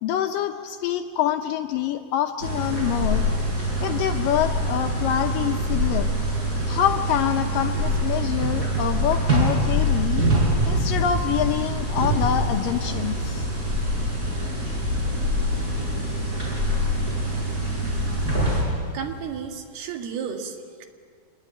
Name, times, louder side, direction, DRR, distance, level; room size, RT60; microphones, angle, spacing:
voice 1, 0.0-3.3 3.8-6.1 6.7-10.2 10.6-13.5, left 10 dB, 75° left, 7 dB, 2.2 m, -26 dB
sound 1, 2.4-18.6, equal, 20° right, 6.8 m, -24 dB
voice 2, 18.9-20.9, right 7 dB, 75° right, 5 dB, 3.8 m, -33 dB
25.5 x 21.0 x 9.2 m, 2.1 s
omnidirectional pair, 4.6 m